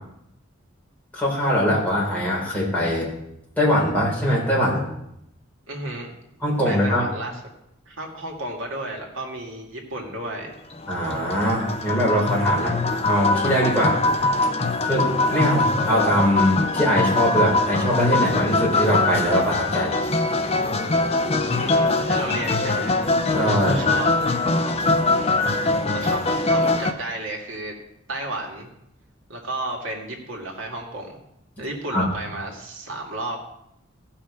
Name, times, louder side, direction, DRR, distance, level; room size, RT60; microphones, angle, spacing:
voice 1, 1.1-3.1 3.6-4.9 6.4-7.1 10.9-12.7 13.1-14.0 14.8-19.9 23.3-23.9 31.9-32.0, equal, 10° left, -6 dB, 4.1 m, -22 dB
voice 2, 5.7-6.1 6.6-7.3 7.9-10.5 12.5-12.8 21.3-23.0 23.7-24.1 25.9-27.8 28.1-28.7 29.3-31.2 31.6-33.4, right 1 dB, 80° right, 0 dB, 2.2 m, -32 dB
sound 1, 10.7-26.9, left 2 dB, 30° left, 0.7 m, -22 dB
15.5 x 5.9 x 5.0 m, 0.79 s
head